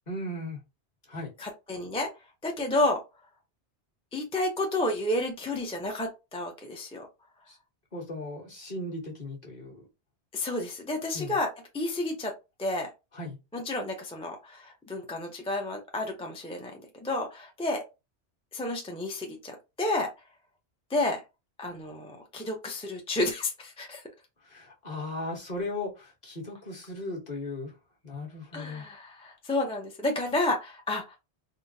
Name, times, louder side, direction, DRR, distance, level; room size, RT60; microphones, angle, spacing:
voice 1, 0.1-0.6 1.1-1.3 7.5-7.6 7.9-9.9 11.1-11.4 13.1-13.4 24.4-27.7 28.0-28.8, left 2 dB, 40° left, -2 dB, 1.2 m, -37 dB
voice 2, 1.4-2.1 2.4-3.0 4.1-7.1 10.3-12.3 12.6-12.9 13.5-17.8 18.5-20.1 20.9-21.2 21.6-24.0 28.5-31.2, left 2 dB, 10° left, 1 dB, 0.3 m, -31 dB
3.8 x 2.1 x 2.6 m, 0.26 s
omnidirectional pair, 1.2 m